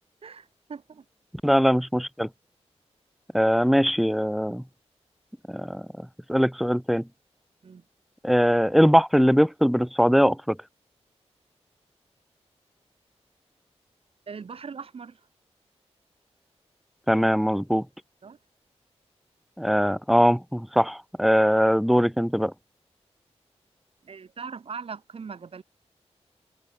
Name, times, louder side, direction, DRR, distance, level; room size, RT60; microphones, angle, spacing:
voice 1, 0.2-1.1 7.6-7.8 14.3-15.2 18.2-18.4 24.0-25.6, right 5 dB, 60° right, 7.0 m, -40 dB
voice 2, 1.4-2.3 3.3-4.6 5.5-5.8 6.3-7.0 8.2-10.6 17.1-17.8 19.6-22.5, equal, ahead, 0.4 m, -21 dB
wide cardioid pair, 150°, 11 cm